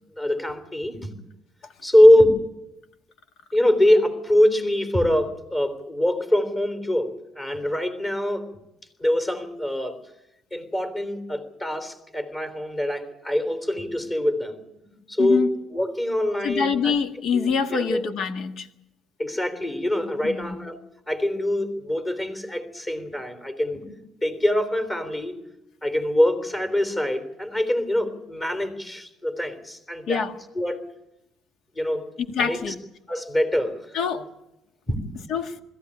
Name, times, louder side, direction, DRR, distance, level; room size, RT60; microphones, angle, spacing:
voice 1, 0.2-1.1 1.8-2.4 3.5-8.5 9.0-10.0 10.5-14.6 15.1-16.9 17.3-18.0 19.2-20.8 21.1-23.8 24.2-25.4 25.8-30.2 30.6-30.8 31.8-32.1 32.4-32.7 33.1-33.8 34.9-35.2, left 1 dB, 25° left, 9 dB, 3.6 m, -23 dB
voice 2, 15.2-15.5 16.4-18.7 20.2-20.6 30.1-30.3 32.3-32.8 33.9-34.3 35.3-35.5, left 6 dB, 65° left, 8 dB, 1.8 m, -25 dB
21.5 x 14.5 x 9.8 m, 0.87 s
cardioid pair, 115°, 0 cm